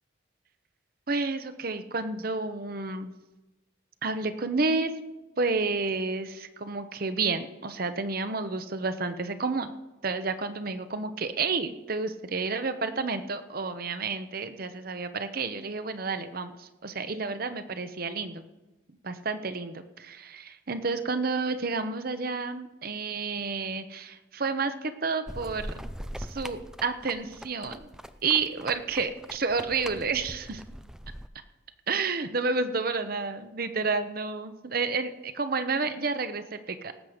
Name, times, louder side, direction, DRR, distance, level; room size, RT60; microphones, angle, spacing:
voice 1, 1.1-3.1 4.0-5.0 5.4-9.7 10.0-18.4 19.0-25.9 26.2-27.9 28.2-30.6 31.9-36.9, right 4 dB, 50° right, 10 dB, 0.9 m, -30 dB
sound 1, 25.3-31.3, equal, 5° right, 0.4 m, -41 dB
18.5 x 8.1 x 5.0 m, 1.1 s
head